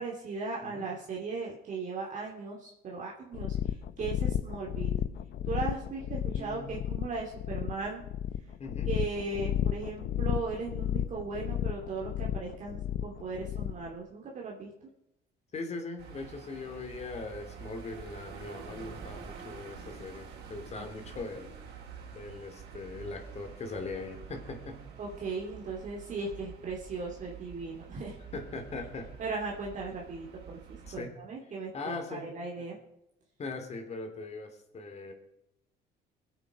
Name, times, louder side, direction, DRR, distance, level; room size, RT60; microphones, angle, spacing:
voice 1, 0.0-4.9 5.4-8.0 8.9-14.9 20.7-20.8 25.0-28.2 29.2-30.6 30.9-32.8, right 4 dB, 50° right, -2 dB, 2.7 m, -37 dB
sound 1, 3.3-13.9, left 10 dB, 65° left, 0.7 m, -33 dB
voice 2, 6.3-6.7 8.6-8.9 15.5-21.5 22.1-24.8 28.3-29.1 30.9-31.1 31.7-32.3 33.4-35.1, left 3 dB, 40° left, 5 dB, 3.0 m, -40 dB
sound 2, 16.0-31.0, right 6 dB, 85° right, 3.3 m, -47 dB
23.0 x 8.3 x 4.9 m, 0.85 s
cardioid pair, 110°, 17 cm